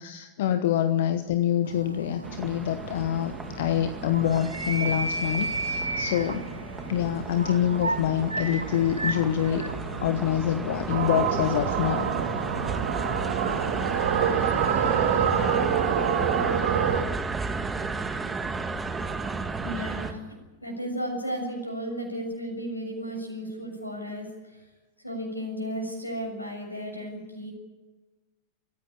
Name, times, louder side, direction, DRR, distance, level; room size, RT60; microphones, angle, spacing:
voice 1, 0.0-6.5 6.9-9.7 10.0-12.1, left 10 dB, 55° left, 11 dB, 1.1 m, -26 dB
sound 1, 1.6-15.6, right 2 dB, 80° right, 1.4 m, -35 dB
sound 2, 2.2-20.1, right 4 dB, 15° right, 1.9 m, -34 dB
sound 3, 10.9-17.0, right 8 dB, 55° right, 2.6 m, -26 dB
voice 2, 19.6-20.2 20.6-24.7 25.0-27.5, equal, 85° left, 4 dB, 6.8 m, -34 dB
24.5 x 15.5 x 8.8 m, 1.2 s
figure-of-eight pair, 90°, 0 cm